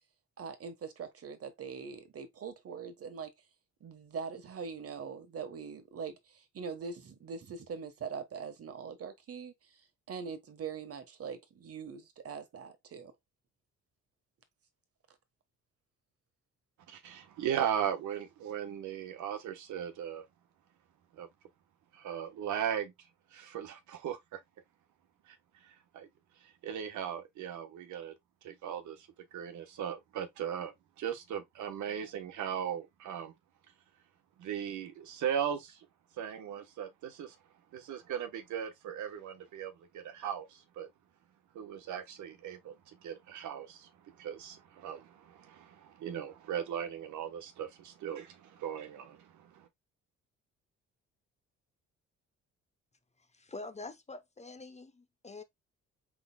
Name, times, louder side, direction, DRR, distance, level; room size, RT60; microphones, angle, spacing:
voice 1, 0.4-3.3 3.8-9.5 10.1-13.1, right 6 dB, 50° right, 1.3 m, -42 dB
voice 2, 16.9-20.2 21.2-21.3 21.9-22.9 23.3-24.4 25.9-26.1 26.6-28.1 28.4-30.7 31.0-33.3 34.4-35.8 36.2-37.3 37.7-40.9 41.5-42.7 43.0-43.9 44.2-49.7, right 9 dB, 70° right, 1.1 m, -38 dB
voice 3, 53.4-55.4, left 3 dB, 20° left, 0.8 m, -45 dB
4.7 x 4.1 x 2.3 m
supercardioid pair, 70°, 30 cm